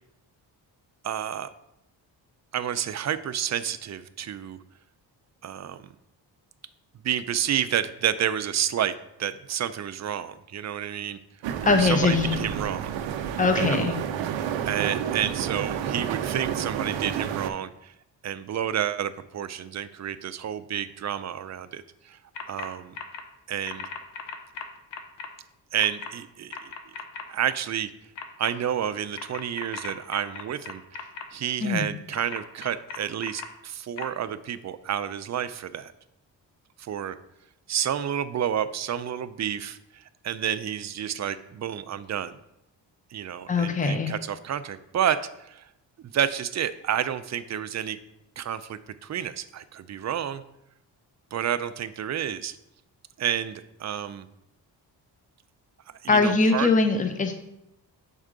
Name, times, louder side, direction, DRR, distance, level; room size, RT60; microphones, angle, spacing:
voice 1, 1.0-1.5 2.5-4.6 5.4-5.9 7.0-11.2 11.6-12.9 13.6-13.8 14.2-17.9 18.2-22.2 22.5-23.0 23.5-23.9 25.7-26.7 27.3-27.9 28.4-35.9 36.8-37.2 37.7-42.4 43.1-45.7 46.0-48.0 48.4-50.4 51.3-52.6 53.2-54.3 56.0-56.7, right 9 dB, 40° right, 13 dB, 0.5 m, -30 dB
sound 1, 11.4-17.5, right 9 dB, 90° right, 0.6 m, -30 dB
voice 2, 11.6-12.4 13.4-14.0 31.6-31.9 43.5-44.1 56.1-57.3, left 4 dB, 20° left, 6 dB, 0.7 m, -22 dB
sound 2, 22.4-22.7 22.9-23.2 23.7-25.3 25.8-26.1 26.5-27.2 28.2-28.5 29.2-31.2 32.1-33.5 34.0-34.1, left 6 dB, 70° left, 0.9 m, -37 dB
6.4 x 4.5 x 3.8 m, 0.83 s
cardioid pair, 65°, 44 cm